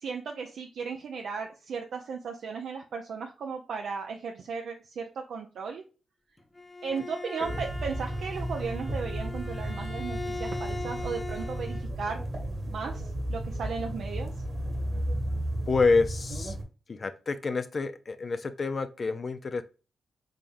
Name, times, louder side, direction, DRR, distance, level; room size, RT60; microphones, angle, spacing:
voice 1, 0.0-5.8 6.8-12.2 12.7-14.3, right 5 dB, 75° right, 2 dB, 0.4 m, -36 dB
Bowed string instrument, 6.4-11.9, left 3 dB, 15° left, 0.8 m, -40 dB
sound 1, 7.4-16.6, right 1 dB, 55° right, 1.3 m, -34 dB
voice 2, 15.7-16.6 16.9-19.6, left 4 dB, 50° left, 10 dB, 0.4 m, -28 dB
3.7 x 3.4 x 2.5 m, 0.33 s
supercardioid pair, 45°, 0 cm